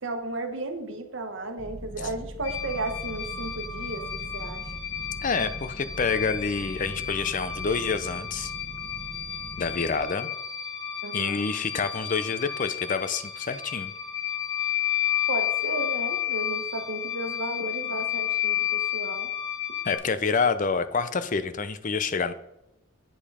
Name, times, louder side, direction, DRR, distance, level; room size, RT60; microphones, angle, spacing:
voice 1, 0.0-4.6 11.0-11.4 15.3-19.3, right 2 dB, 55° right, 6 dB, 1.2 m, -34 dB
sound 1, 1.6-10.0, right 1 dB, 20° right, 1.0 m, -41 dB
sound 2, 2.4-20.0, left 10 dB, 60° left, 2.6 m, -32 dB
voice 2, 5.2-8.5 9.6-10.3 11.1-13.9 19.8-22.3, left 5 dB, 35° left, 13 dB, 0.5 m, -27 dB
8.6 x 5.4 x 4.9 m, 0.87 s
head